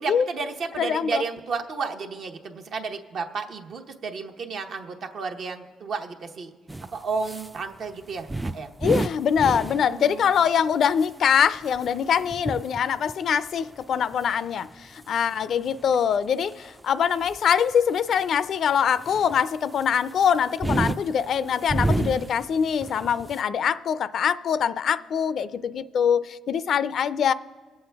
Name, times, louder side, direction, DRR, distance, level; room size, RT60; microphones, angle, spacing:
voice 1, 0.0-6.5 6.9-8.7 9.8-10.5, right 4 dB, 65° right, 0.9 m, -32 dB
voice 2, 0.8-1.2 8.8-27.3, left 8 dB, 65° left, 0.4 m, -23 dB
sound 1, 6.7-7.6 7.9-10.0 10.3-10.7 11.0-16.7 17.2-17.7 18.1-18.2 18.9-22.5 22.8-23.4, right 2 dB, 15° right, 0.3 m, -30 dB
21.5 x 7.7 x 3.4 m
cardioid pair, 90°, 0 cm